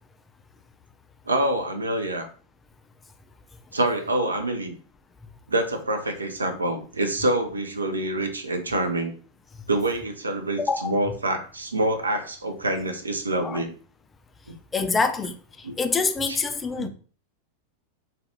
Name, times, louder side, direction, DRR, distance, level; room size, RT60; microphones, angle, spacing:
voice 1, 1.3-2.3 3.7-4.8 5.5-9.1 9.7-13.7 14.5-14.6 15.6-15.8 16.3-16.4 16.8-16.9, right 1 dB, 75° right, 0.4 m, -26 dB
voice 2, 10.6-10.9 13.4-13.6 14.7-15.4 15.8-16.9, left 4 dB, 15° left, 0.3 m, -25 dB
2.3 x 2.2 x 2.7 m
figure-of-eight pair, 90°, 0 cm